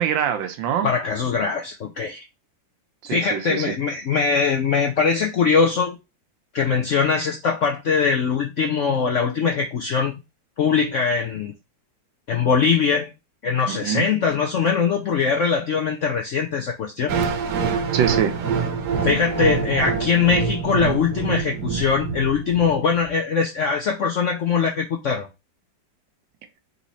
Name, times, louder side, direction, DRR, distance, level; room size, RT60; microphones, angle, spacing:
voice 1, 0.0-0.9 3.0-3.6 13.7-14.1 17.9-18.3, right 9 dB, 85° right, 1.5 m, -24 dB
voice 2, 0.8-2.3 3.1-6.0 6.5-10.1 10.6-11.5 12.3-13.1 13.4-17.2 19.0-25.3, left 5 dB, 70° left, 0.7 m, -21 dB
sound 1, 17.1-23.1, right 6 dB, 65° right, 1.2 m, -25 dB
4.1 x 3.1 x 4.0 m
omnidirectional pair, 2.0 m